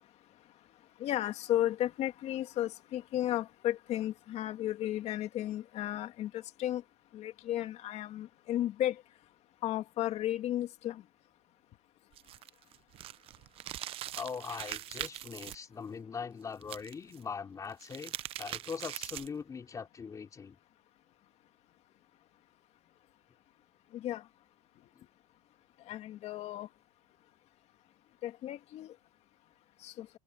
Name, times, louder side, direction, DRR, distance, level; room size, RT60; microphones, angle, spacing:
voice 1, 1.0-6.8 7.1-9.0 9.6-11.0 23.9-24.2 25.9-26.7 28.2-28.9 29.8-30.1, left 13 dB, 35° left, 2.1 m, -34 dB
sound 1, 12.1-15.5 16.6-17.2 17.7-19.4, right 13 dB, 30° right, 0.8 m, -42 dB
voice 2, 14.1-20.6, left 6 dB, 15° left, 4.0 m, -41 dB
supercardioid pair, 135°, 20 cm